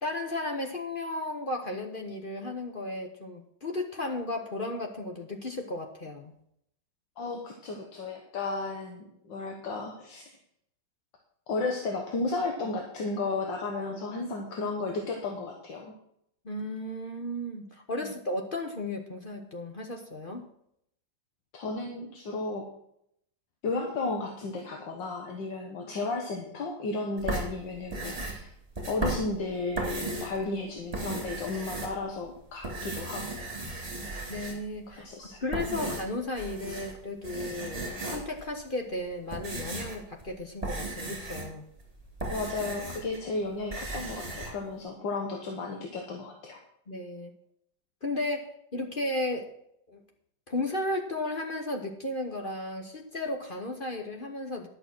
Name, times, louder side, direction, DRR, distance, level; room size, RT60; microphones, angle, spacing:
voice 1, 0.0-6.3 16.4-20.4 34.3-35.1 35.4-37.8 38.1-41.6 46.9-47.3 48.0-49.5 49.9-50.0 50.5-54.7, left 1 dB, 35° left, 2 dB, 1.0 m, -34 dB
voice 2, 7.2-10.3 11.5-15.9 18.0-18.1 21.5-22.7 23.6-28.5 28.9-33.7 34.9-35.4 35.7-35.8 42.3-46.6, left 3 dB, 75° left, 1 dB, 1.9 m, -34 dB
sound 1, 27.2-30.4 30.8-32.3 32.6-34.8 35.3-37.0 37.2-38.4 39.0-43.2 43.5-44.5, right 2 dB, 20° right, 2.9 m, -36 dB
11.0 x 6.9 x 6.1 m, 0.72 s
omnidirectional pair, 2.0 m